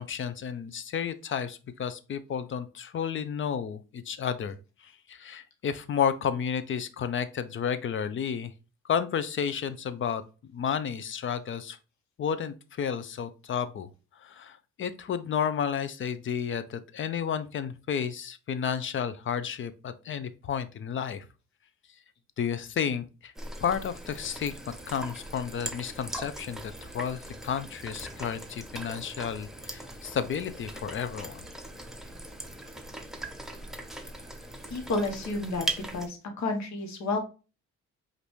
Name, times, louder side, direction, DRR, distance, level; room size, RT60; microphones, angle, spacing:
voice 1, 0.0-4.6 4.8-8.5 8.8-10.2 10.5-11.8 12.2-13.9 14.2-21.3 22.4-23.3 23.6-24.6 24.9-31.4, left 7 dB, 40° left, 13 dB, 0.5 m, -32 dB
sound 1, 23.4-36.1, right 2 dB, ahead, 0.7 m, -40 dB
voice 2, 34.7-35.7 35.9-37.2, left 3 dB, 65° left, 5 dB, 1.1 m, -30 dB
5.1 x 2.6 x 3.1 m, 0.32 s
cardioid pair, 90°, 30 cm